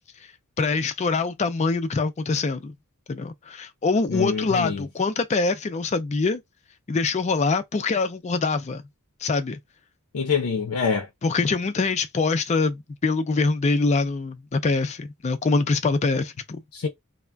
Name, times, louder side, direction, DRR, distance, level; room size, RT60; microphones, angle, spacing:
voice 1, 0.6-2.7 3.1-6.4 6.9-8.8 9.2-9.6 11.2-16.6, left 4 dB, 30° left, 0.4 m, -24 dB
voice 2, 4.1-4.8 10.1-11.1 16.7-16.9, left 5 dB, 85° left, 0.5 m, -25 dB
2.4 x 2.0 x 3.2 m
head